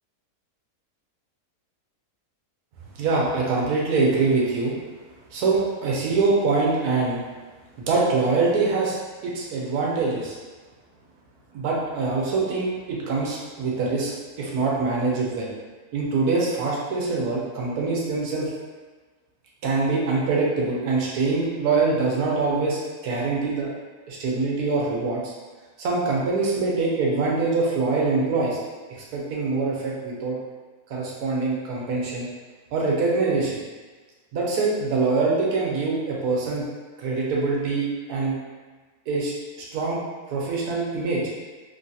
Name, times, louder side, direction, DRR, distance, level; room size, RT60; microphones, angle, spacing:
voice 1, 3.0-4.7 5.3-7.2 7.8-9.0 9.2-10.3 11.5-14.1 14.4-15.5 15.9-18.5 19.6-23.7 24.1-25.2 25.8-28.6 29.1-30.4 30.9-32.3 32.7-33.6 34.3-36.7 37.0-38.4 39.1-39.3 39.7-40.0 40.3-41.2, right 3 dB, 75° right, -3 dB, 1.2 m, -24 dB
3.2 x 2.7 x 2.3 m, 1.3 s
omnidirectional pair, 1.7 m